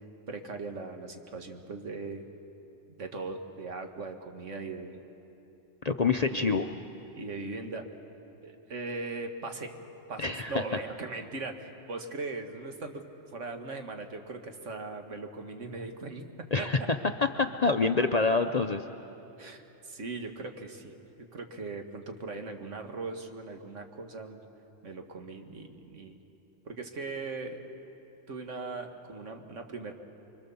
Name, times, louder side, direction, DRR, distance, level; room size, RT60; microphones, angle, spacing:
voice 1, 0.3-2.2 3.0-5.0 6.3-6.8 7.2-7.9 8.4-9.8 10.1-13.0 13.3-16.2 16.6-16.7 19.4-24.4 24.8-26.2 26.7-27.7 28.3-29.9, right 3 dB, 70° right, 5 dB, 1.9 m, -39 dB
voice 2, 5.8-6.6 10.2-10.6 16.5-16.8 17.4-18.8, left 4 dB, 45° left, 7 dB, 0.6 m, -26 dB
25.5 x 24.0 x 7.1 m, 3.0 s
omnidirectional pair, 1.3 m